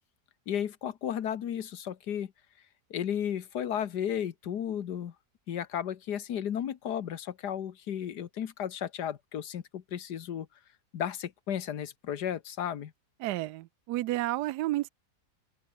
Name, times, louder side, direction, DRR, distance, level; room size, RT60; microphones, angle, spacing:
voice 1, 0.5-2.3 2.9-5.1 5.5-10.5 10.9-12.9, left 9 dB, 80° left, 1.7 m, -34 dB
voice 2, 13.2-14.9, right 17 dB, 80° right, 1.1 m, -31 dB
open air
omnidirectional pair, 1.7 m